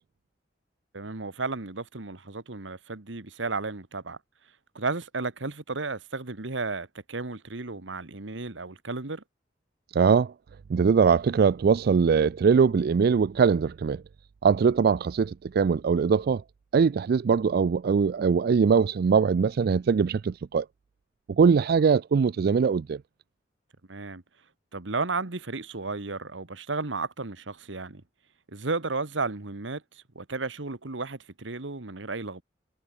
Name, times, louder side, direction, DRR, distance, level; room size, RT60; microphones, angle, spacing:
voice 1, 0.9-4.2 4.7-9.2 23.9-24.2 24.7-28.0 28.5-32.4, right 3 dB, 85° right, 1.5 m, -33 dB
voice 2, 9.9-10.3 10.7-14.0 14.4-16.4 16.7-20.7 21.3-23.0, right 6 dB, 55° right, 0.4 m, -22 dB
head